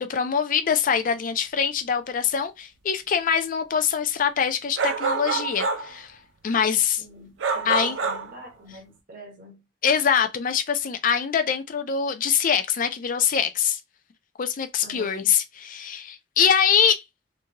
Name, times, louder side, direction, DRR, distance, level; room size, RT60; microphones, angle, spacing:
voice 1, 0.0-6.1 6.4-7.0 7.7-8.0 9.8-13.8 14.4-17.0, left 7 dB, 45° left, 0.4 m, -23 dB
sound 1, 4.8-5.9 7.4-8.3, right 5 dB, 85° right, 0.5 m, -26 dB
voice 2, 7.0-9.7 14.8-15.2, right 1 dB, 50° right, 1.0 m, -45 dB
2.6 x 2.3 x 2.8 m
head